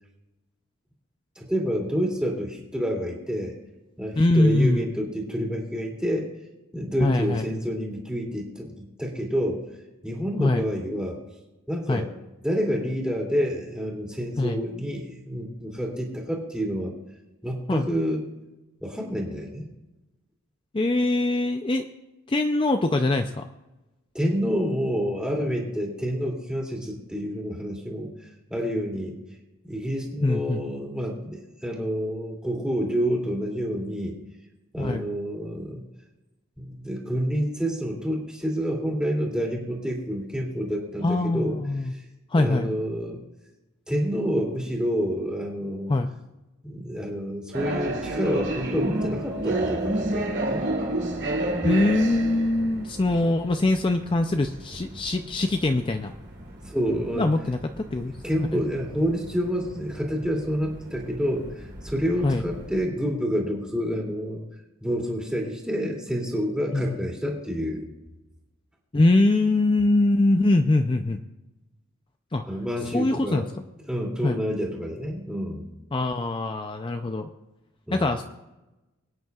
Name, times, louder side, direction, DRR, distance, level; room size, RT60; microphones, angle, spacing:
voice 1, 1.4-3.5 4.0-6.3 6.7-9.6 10.0-11.2 11.7-12.1 12.4-16.9 17.4-18.2 18.8-19.7 24.1-29.2 29.6-34.2 34.7-35.9 36.6-41.6 41.9-42.0 42.3-43.2 43.9-45.9 46.6-50.7 56.6-57.3 58.2-64.4 64.8-67.9 72.4-73.5 73.9-75.7 77.9-78.1, equal, 5° right, -2 dB, 2.6 m, -28 dB
voice 2, 4.2-4.9 7.0-7.5 10.4-10.6 11.9-12.0 14.4-14.6 17.7-17.9 20.7-21.9 22.3-23.4 30.2-30.6 34.8-35.1 41.0-41.9 42.3-42.7 45.9-46.1 51.6-56.1 57.2-58.1 58.5-58.6 62.2-62.5 66.7-67.0 68.9-71.2 72.3-72.4 72.9-73.4 74.2-74.4 75.9-77.3 77.9-78.2, left 2 dB, 25° left, 6 dB, 0.4 m, -23 dB
sound 1, 47.5-62.9, right 1 dB, 55° right, 2.6 m, -32 dB
24.0 x 9.2 x 2.4 m, 1.0 s
head